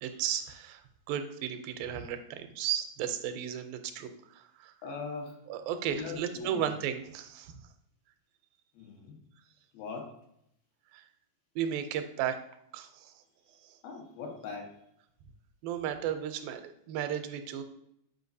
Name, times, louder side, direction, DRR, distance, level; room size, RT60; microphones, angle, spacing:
voice 1, 0.0-4.7 5.5-7.6 10.9-11.0 11.6-12.4 12.7-13.2 13.6-13.8 15.6-17.6, right 9 dB, 85° right, 8 dB, 2.3 m, -35 dB
voice 2, 4.8-5.4 5.8-6.7 8.7-9.2 9.7-10.2 13.8-14.7, left 4 dB, 90° left, 0 dB, 3.1 m, -40 dB
7.8 x 5.1 x 2.7 m, 0.74 s
omnidirectional pair, 4.1 m